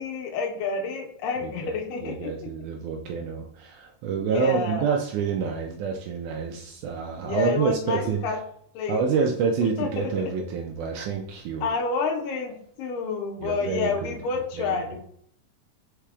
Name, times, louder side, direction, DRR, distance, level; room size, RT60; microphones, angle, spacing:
voice 1, 0.0-2.5 4.1-4.9 7.2-8.4 8.7-9.3 9.8-10.1 11.6-15.0, left 4 dB, 85° left, 2 dB, 2.4 m, -29 dB
voice 2, 1.4-1.8 2.0-8.2 8.9-11.7 13.4-14.2 14.6-14.8, right 6 dB, 80° right, 2 dB, 1.8 m, -28 dB
4.9 x 4.4 x 2.3 m, 0.66 s
omnidirectional pair, 3.9 m